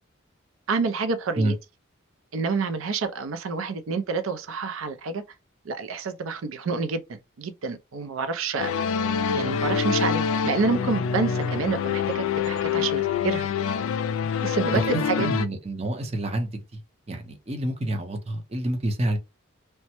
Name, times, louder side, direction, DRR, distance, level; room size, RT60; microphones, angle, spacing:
voice 1, 0.7-1.5 2.3-5.2 5.6-8.7 9.3-13.5 14.2-15.3, right 4 dB, 75° right, 0.4 m, -28 dB
sound 1, 8.6-15.5, left 7 dB, 80° left, 0.3 m, -26 dB
voice 2, 15.2-16.8 17.1-19.2, right 1 dB, 30° right, 0.6 m, -28 dB
3.2 x 2.0 x 2.9 m
head